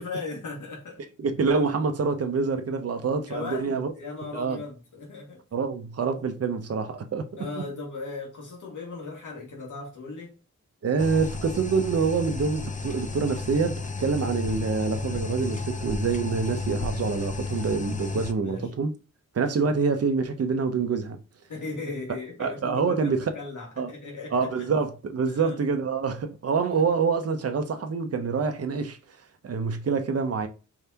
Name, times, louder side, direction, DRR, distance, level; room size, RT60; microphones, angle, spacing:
voice 1, 0.0-1.0 3.3-5.4 7.4-10.4 18.4-18.7 21.5-24.5 25.3-25.6, left 3 dB, 80° left, 2.1 m, -37 dB
voice 2, 1.2-3.9 4.3-4.6 5.5-7.3 10.8-18.9 19.3-21.2 22.4-23.3 23.8-23.9 24.3-29.0 29.4-30.5, right 5 dB, 50° right, 0.8 m, -26 dB
sound 1, 11.0-18.3, left 3 dB, 25° left, 0.6 m, -32 dB
4.7 x 3.5 x 2.9 m
cardioid pair, 70°, 30 cm